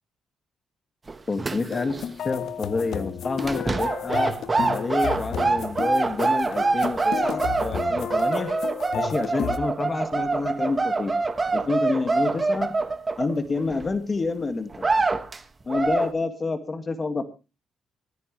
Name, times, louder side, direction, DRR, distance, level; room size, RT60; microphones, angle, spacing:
sound 1, 1.1-2.0 2.3-2.5 3.4-13.9 14.3-14.4 14.7-15.4 15.7-16.1, right 3 dB, 25° right, 1.1 m, -25 dB
voice 1, 1.3-2.0 2.2-4.3 4.7-8.5 8.9-11.1 11.5-12.7 13.2-14.9 15.7-17.2, left 3 dB, 30° left, 9 dB, 1.8 m, -28 dB
sound 2, 1.6-9.6, left 8 dB, 65° left, 1.0 m, -32 dB
25.5 x 9.3 x 3.2 m, 0.30 s
cardioid pair, 120°, 0 cm